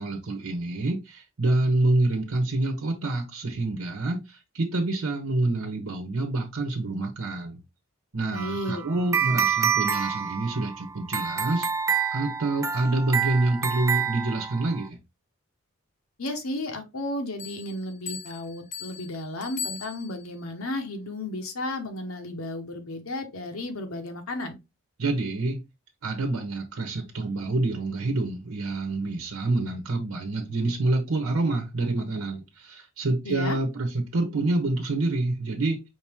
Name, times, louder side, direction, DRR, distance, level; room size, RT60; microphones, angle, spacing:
voice 1, 0.0-4.2 4.5-7.6 8.1-11.7 12.1-15.0 25.0-25.6 26.0-35.8, right 2 dB, 80° right, 1.0 m, -27 dB
voice 2, 8.3-8.8 16.2-24.6 33.2-33.6, left 1 dB, 75° left, 1.0 m, -33 dB
sound 1, 8.4-14.9, right 7 dB, 15° right, 0.3 m, -28 dB
sound 2, 17.4-20.4, left 6 dB, 35° left, 0.8 m, -39 dB
5.3 x 2.9 x 3.5 m
head